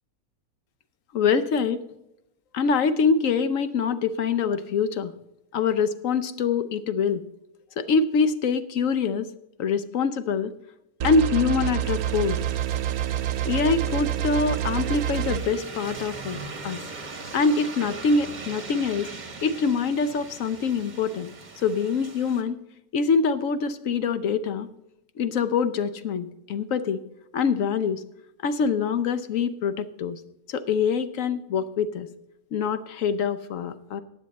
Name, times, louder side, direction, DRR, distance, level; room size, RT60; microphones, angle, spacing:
voice 1, 1.1-1.8 2.5-5.1 5.5-7.2 7.8-9.3 9.6-10.5 11.0-12.4 13.4-16.8 17.3-19.1 19.4-21.3 21.6-22.6 22.9-24.7 25.2-27.0 27.3-28.0 28.4-30.2 30.5-32.1 32.5-34.0, left 5 dB, 70° left, 12 dB, 1.0 m, -24 dB
sound 1, 11.0-15.4, right 11 dB, 80° right, 1.1 m, -27 dB
sound 2, 11.8-22.4, right 3 dB, 35° right, 1.2 m, -41 dB
15.0 x 9.2 x 4.1 m, 0.86 s
omnidirectional pair, 1.5 m